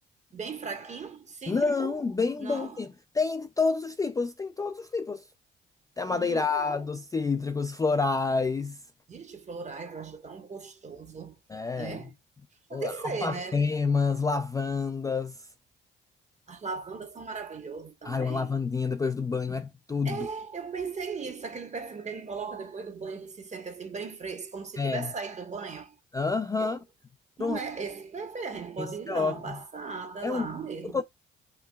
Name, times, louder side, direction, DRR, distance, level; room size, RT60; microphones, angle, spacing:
voice 1, 0.3-2.0 2.4-2.8 6.1-6.8 9.1-11.4 11.7-12.1 12.7-13.7 16.5-18.5 20.0-26.0 26.6-26.8 27.4-31.0, right 5 dB, 35° right, 1.2 m, -37 dB
voice 2, 1.5-2.9 3.1-5.2 6.0-8.8 11.5-12.0 12.7-12.9 13.2-15.4 18.0-20.3 24.8-25.1 26.1-26.8 27.4-27.6 28.8-29.6 30.2-30.5 30.9-31.0, left 4 dB, 15° left, 0.3 m, -28 dB
4.5 x 3.0 x 2.2 m
cardioid pair, 90°, 20 cm